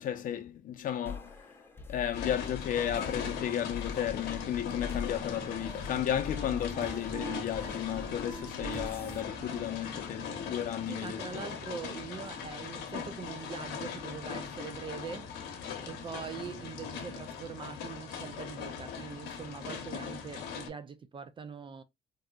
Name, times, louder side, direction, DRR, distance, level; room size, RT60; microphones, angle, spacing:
voice 1, 0.0-1.3 1.9-11.4, left 10 dB, 55° left, 0.6 m, -33 dB
sound 1, 1.1-10.5, left 5 dB, 15° left, 0.6 m, -43 dB
sound 2, 2.1-20.7, left 6 dB, 85° left, 0.8 m, -40 dB
Wind instrument woodwind instrument, 5.2-11.1, right 8 dB, 85° right, 0.8 m, -47 dB
voice 2, 10.9-15.3 15.8-21.8, right 6 dB, 30° right, 0.4 m, -43 dB
3.5 x 2.7 x 2.3 m
cardioid pair, 110°, 17 cm